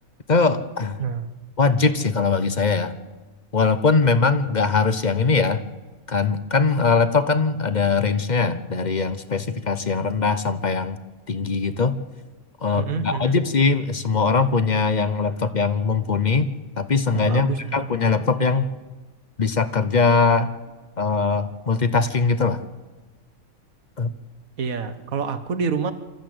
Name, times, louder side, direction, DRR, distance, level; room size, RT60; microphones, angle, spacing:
voice 1, 0.3-1.0 1.6-2.9 3.5-5.6 6.1-11.0 11.3-12.0 12.6-18.7 19.4-20.5 21.0-22.6 24.0-24.1, left 4 dB, 35° left, 12 dB, 0.8 m, -21 dB
voice 2, 12.7-13.4 17.1-17.9 24.6-25.9, right 6 dB, 70° right, 11 dB, 1.7 m, -27 dB
27.0 x 14.0 x 7.8 m, 1.3 s
omnidirectional pair, 1.5 m